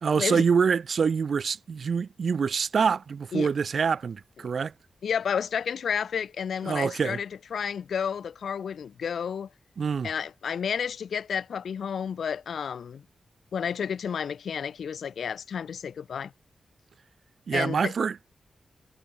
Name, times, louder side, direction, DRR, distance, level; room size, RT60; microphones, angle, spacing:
voice 1, 0.0-4.7 6.6-7.2 9.8-10.1 17.5-18.2, right 6 dB, 55° right, 1.4 m, -25 dB
voice 2, 5.0-9.5 10.0-13.0 13.5-16.3 17.5-17.9, left 7 dB, 75° left, 1.8 m, -31 dB
wide cardioid pair, 165°, 0 cm